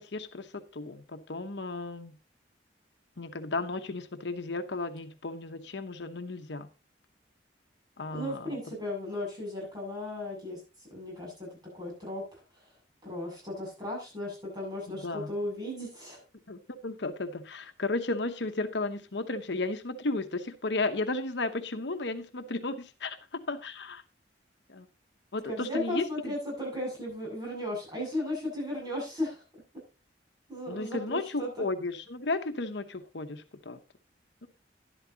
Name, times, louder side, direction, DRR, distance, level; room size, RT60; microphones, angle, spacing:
voice 1, 0.0-2.2 3.2-6.7 8.0-8.5 14.9-15.3 16.5-24.0 24.7-24.9 25.3-26.0 30.7-33.8 34.4-34.5, left 3 dB, 70° left, 8 dB, 0.9 m, -34 dB
voice 2, 8.1-10.6 10.9-11.5 11.7-12.4 13.0-16.2 25.5-29.4 30.5-31.7, left 1 dB, 20° right, -2 dB, 7.8 m, -35 dB
12.0 x 11.0 x 2.9 m, 0.29 s
head